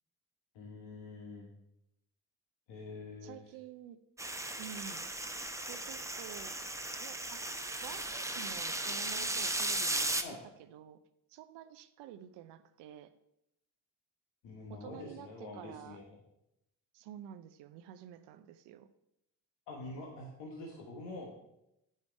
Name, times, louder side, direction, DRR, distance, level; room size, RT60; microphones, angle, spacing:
voice 1, 0.5-1.5 2.7-3.4 10.2-10.4 14.4-16.0 19.7-21.3, left 2 dB, 75° left, -1 dB, 1.5 m, -45 dB
voice 2, 3.2-4.0 4.6-5.0 5.7-6.6 7.0-7.5 7.8-10.2 10.6-11.0 11.3-13.1 14.7-16.0 16.9-18.9, right 10 dB, 80° right, 12 dB, 0.7 m, -49 dB
sound 1, 4.2-10.2, right 2 dB, 5° right, 0.8 m, -36 dB
9.5 x 5.5 x 4.6 m, 0.84 s
hypercardioid pair, 50°, 42 cm